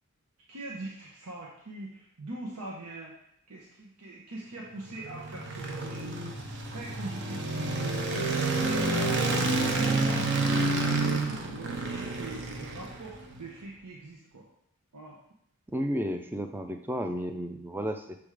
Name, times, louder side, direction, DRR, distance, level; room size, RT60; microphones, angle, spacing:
voice 1, 0.5-3.1 3.5-8.9 9.1-14.5 14.9-15.2, right 2 dB, 90° right, -3 dB, 1.1 m, -43 dB
sound 1, 4.9-13.3, right 2 dB, 50° right, 0.8 m, -29 dB
voice 2, 15.7-18.2, equal, 10° right, 6 dB, 0.4 m, -32 dB
7.0 x 3.6 x 4.9 m, 0.72 s
head